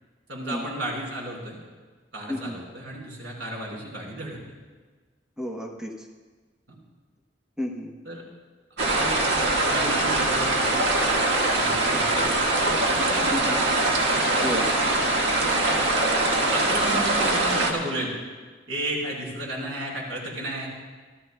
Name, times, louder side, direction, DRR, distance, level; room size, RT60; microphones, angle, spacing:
voice 1, 0.3-1.6 2.1-4.4 6.7-6.8 8.1-8.2 8.8-9.1 9.6-10.8 11.5-12.6 12.8-13.4 16.5-18.1 18.7-20.7, right 1 dB, 85° right, -3 dB, 4.7 m, -33 dB
voice 2, 2.3-2.6 5.4-6.1 7.6-7.9 13.3-13.6 14.4-14.7, left 1 dB, 5° right, 0 dB, 1.0 m, -31 dB
sound 1, 8.8-17.7, right 2 dB, 70° right, 1.6 m, -22 dB
27.5 x 12.5 x 2.3 m, 1.4 s
head